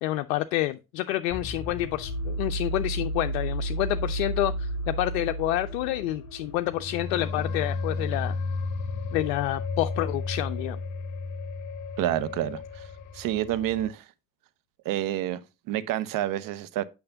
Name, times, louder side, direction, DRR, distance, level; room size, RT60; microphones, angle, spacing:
voice 1, 0.0-8.4 9.1-10.8, left 15 dB, 60° left, 0.5 m, -28 dB
sound 1, 1.3-13.9, left 1 dB, 40° left, 0.9 m, -33 dB
voice 2, 12.0-12.8 13.1-14.0 14.8-16.8, right 13 dB, 45° right, 0.7 m, -29 dB
8.6 x 5.9 x 2.6 m
figure-of-eight pair, 55°, 48 cm